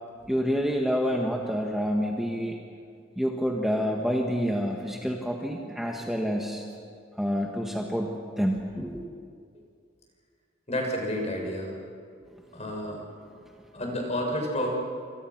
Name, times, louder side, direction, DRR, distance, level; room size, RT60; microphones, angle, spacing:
voice 1, 0.3-2.6 3.2-6.6 7.2-9.0, equal, ahead, 0 dB, 1.6 m, -28 dB
voice 2, 10.7-11.7 12.5-13.0 13.7-14.7, left 1 dB, 35° left, 1 dB, 6.7 m, -30 dB
28.0 x 26.5 x 6.1 m, 2.3 s
head